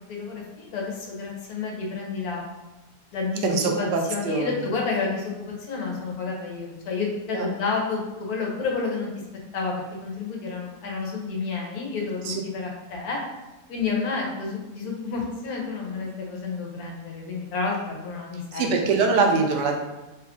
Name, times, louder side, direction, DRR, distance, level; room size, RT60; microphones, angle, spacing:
voice 1, 0.1-2.4 3.1-5.3 5.6-9.1 9.5-13.2 13.7-18.8, left 4 dB, 70° left, -2 dB, 1.1 m, -30 dB
voice 2, 3.4-4.5 7.3-7.5 12.2-12.4 18.5-19.7, right 4 dB, 85° right, 2 dB, 1.2 m, -23 dB
3.1 x 2.3 x 3.6 m, 1.1 s
omnidirectional pair, 1.8 m